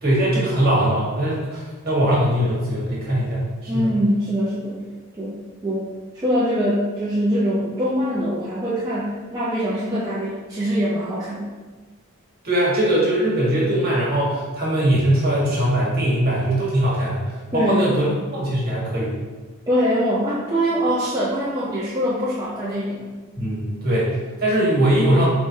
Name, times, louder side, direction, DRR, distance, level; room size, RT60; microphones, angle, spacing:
voice 1, 0.0-3.9 12.4-18.0 18.3-19.1 23.3-25.3, right 1 dB, 45° right, -6 dB, 1.4 m, -21 dB
voice 2, 3.7-4.8 5.2-5.9 6.1-11.5 17.5-17.9 19.7-23.1, equal, 15° right, -9 dB, 0.5 m, -23 dB
4.9 x 3.3 x 2.7 m, 1.3 s
head